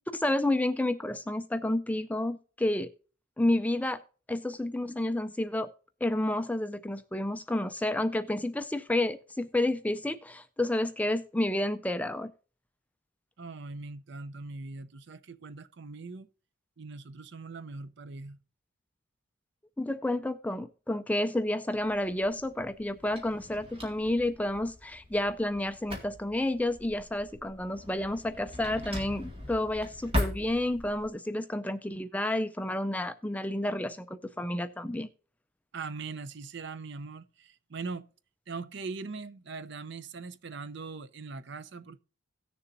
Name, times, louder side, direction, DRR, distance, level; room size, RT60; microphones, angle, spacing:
voice 1, 0.1-2.9 3.4-4.0 4.3-5.7 6.0-12.3 19.8-35.1, left 1 dB, 5° left, 0.4 m, -30 dB
voice 2, 13.4-16.3 16.8-18.4 35.7-38.1 38.5-42.0, right 4 dB, 55° right, 0.6 m, -41 dB
Drawer open or close, 21.8-31.1, left 1 dB, 25° right, 2.1 m, -39 dB
17.5 x 6.9 x 2.6 m
head